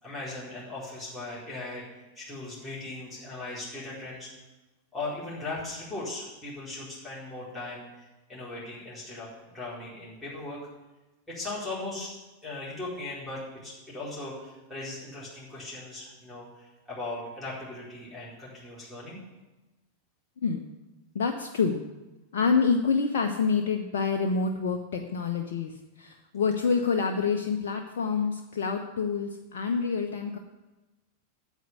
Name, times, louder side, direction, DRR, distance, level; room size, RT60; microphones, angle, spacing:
voice 1, 0.0-1.9 2.1-4.3 4.9-9.3 9.5-10.6 11.3-12.2 12.4-19.2, left 2 dB, 5° left, -9 dB, 4.7 m, -38 dB
voice 2, 21.1-21.8 22.3-25.7 26.0-30.4, left 5 dB, 55° left, 3 dB, 0.9 m, -27 dB
9.2 x 8.3 x 9.6 m, 1.1 s
figure-of-eight pair, 90°, 0 cm